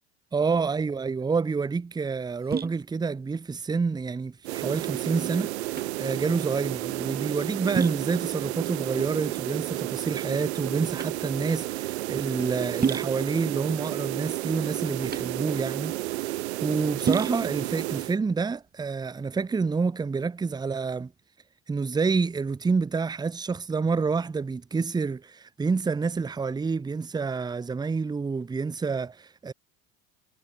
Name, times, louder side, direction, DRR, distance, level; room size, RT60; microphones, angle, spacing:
voice 1, 0.3-5.5 6.0-21.1 21.7-29.5, right 4 dB, 10° right, 0.7 m, -28 dB
sound 1, 0.9-19.5, right 6 dB, 30° right, 4.2 m, -36 dB
sound 2, 4.4-18.2, right 19 dB, 75° right, 1.3 m, -32 dB
hypercardioid pair, 70°, 33 cm